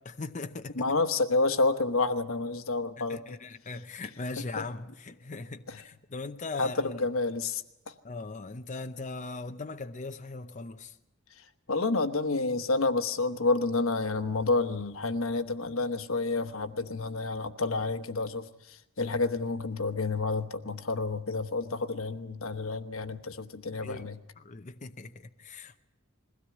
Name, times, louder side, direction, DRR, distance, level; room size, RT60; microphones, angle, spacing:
voice 1, 0.0-0.8 3.0-7.0 8.0-11.0 23.7-24.1 24.4-25.8, left 3 dB, 40° left, 0.7 m, -40 dB
voice 2, 0.8-3.4 5.7-5.8 6.6-7.6 11.7-24.2, left 3 dB, 85° left, 1.2 m, -29 dB
21.5 x 16.5 x 8.4 m
head